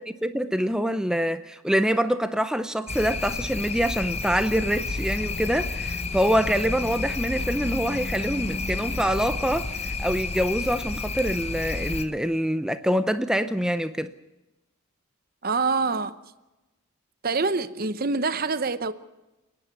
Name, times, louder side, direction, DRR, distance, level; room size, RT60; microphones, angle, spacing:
voice 1, 0.2-14.1, equal, 5° right, 0.6 m, -25 dB
sound 1, 2.9-12.0, left 3 dB, 30° left, 1.0 m, -30 dB
voice 2, 15.4-16.2 17.2-18.9, right 4 dB, 40° right, 0.8 m, -25 dB
29.0 x 10.5 x 9.5 m
head